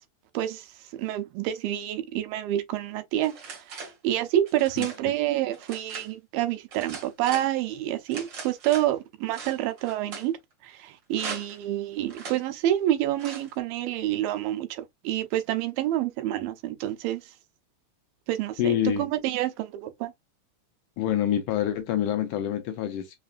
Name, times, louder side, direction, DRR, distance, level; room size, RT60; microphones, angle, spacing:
voice 1, 0.3-0.7 1.0-10.4 10.6-17.2 18.3-20.1, right 13 dB, 90° right, 2.5 m, -28 dB
sound 1, 3.2-4.0 4.5-5.0 5.5-6.1 6.7-7.5 8.1-8.9 9.3-10.3 11.1-11.6 12.1-12.4 13.2-13.5, right 4 dB, 70° right, 1.0 m, -40 dB
voice 2, 18.6-19.0 21.0-23.2, left 10 dB, 80° left, 1.8 m, -26 dB
5.6 x 2.4 x 2.4 m
omnidirectional pair, 4.0 m